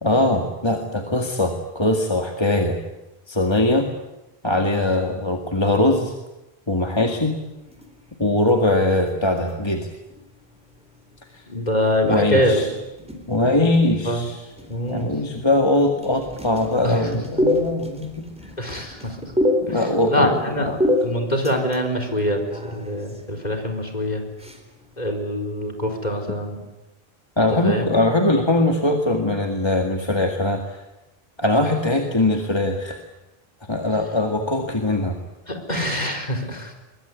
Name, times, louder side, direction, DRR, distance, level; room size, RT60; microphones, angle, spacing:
voice 1, 0.0-2.8 3.3-3.9 4.4-6.1 6.7-7.4 8.2-9.9 11.3-11.4 12.0-12.7 13.3-14.5 14.9-18.3 19.6-20.7 27.4-30.8 31.4-33.0 33.7-35.2, left 1 dB, 25° left, 3 dB, 2.0 m, -21 dB
sound 1, 7.0-25.2, left 1 dB, 5° right, 3.9 m, -30 dB
voice 2, 11.5-12.6 14.1-14.3 14.7-15.1 16.8-17.0 18.6-19.1 19.7-19.8 20.1-20.7 21.0-22.4 22.7-24.2 25.0-26.6 27.6-27.9 35.5-36.7, equal, 40° left, 3 dB, 4.5 m, -24 dB
23.0 x 22.5 x 9.6 m, 0.98 s
omnidirectional pair, 1.1 m